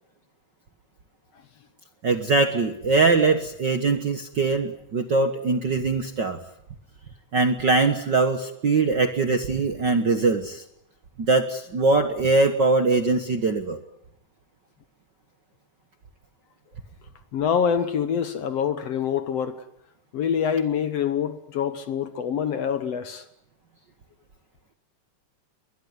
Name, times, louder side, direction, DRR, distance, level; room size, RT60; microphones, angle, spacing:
voice 1, 2.0-6.4 7.3-10.6 11.2-13.8, right 3 dB, 50° right, 1.4 m, -22 dB
voice 2, 17.3-19.6 20.1-23.2, left 7 dB, 60° left, 1.9 m, -25 dB
22.5 x 21.5 x 9.6 m
omnidirectional pair, 3.7 m